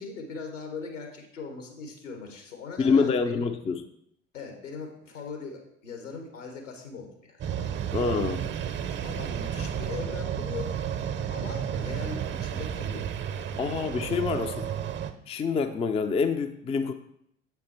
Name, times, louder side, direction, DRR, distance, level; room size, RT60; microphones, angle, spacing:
voice 1, 0.0-3.4 4.3-7.7 9.0-10.7 11.3-13.8, left 4 dB, 80° left, 3 dB, 1.5 m, -40 dB
voice 2, 2.8-3.8 7.9-8.5 13.6-14.7 15.3-16.9, left 5 dB, 15° left, 9 dB, 0.4 m, -26 dB
sound 1, 7.4-15.1, right 9 dB, 30° right, 0.6 m, -32 dB
7.7 x 4.4 x 4.3 m, 0.74 s
figure-of-eight pair, 65°, 37 cm